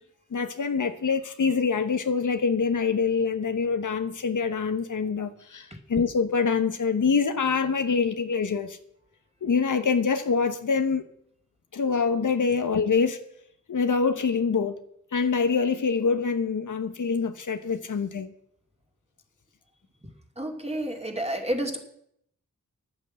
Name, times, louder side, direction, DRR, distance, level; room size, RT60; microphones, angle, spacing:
voice 1, 0.3-8.8 9.4-11.0 11.7-13.2 13.7-14.8 15.1-18.3, left 5 dB, 70° left, 9 dB, 1.0 m, -25 dB
voice 2, 20.4-21.8, right 1 dB, 20° right, 3 dB, 2.4 m, -30 dB
10.5 x 9.0 x 7.7 m, 0.73 s
cardioid pair, 50°, 32 cm